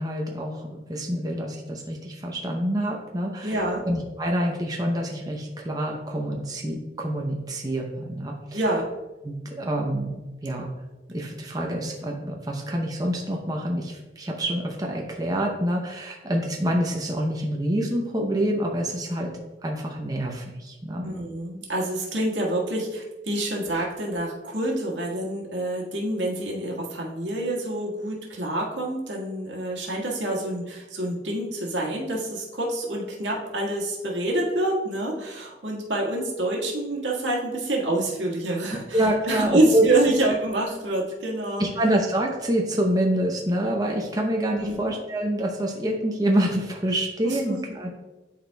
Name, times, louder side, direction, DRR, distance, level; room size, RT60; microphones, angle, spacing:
voice 1, 0.0-8.6 9.2-10.1 10.4-10.7 11.1-19.3 19.6-21.0 38.5-38.6 38.9-39.9 41.6-47.9, right 1 dB, 20° right, 0 dB, 0.6 m, -26 dB
voice 2, 3.4-3.8 8.5-8.9 21.0-41.6 44.6-44.8 47.2-47.4, right 1 dB, 85° right, -3 dB, 1.6 m, -27 dB
11.0 x 4.2 x 2.3 m, 1.1 s
head